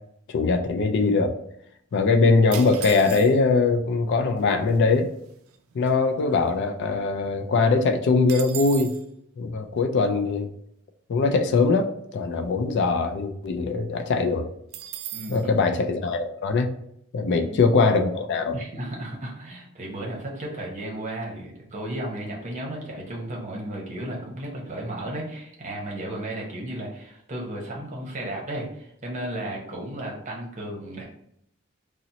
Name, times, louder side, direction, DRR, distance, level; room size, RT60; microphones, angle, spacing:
voice 1, 0.3-1.3 1.9-5.1 5.7-8.9 9.4-10.5 11.1-14.5 15.3-16.7 17.1-18.6, left 4 dB, 60° left, 6 dB, 0.4 m, -22 dB
sound 1, 2.5-3.6 4.4-4.5 4.7-5.0 5.5-6.9 7.3-7.4 7.7-9.1 14.7-15.5, right 11 dB, 85° right, 0.3 m, -38 dB
voice 2, 15.1-15.7 17.3-17.6 18.5-31.1, right 1 dB, 35° right, -1 dB, 0.8 m, -34 dB
2.8 x 2.0 x 3.8 m, 0.73 s
head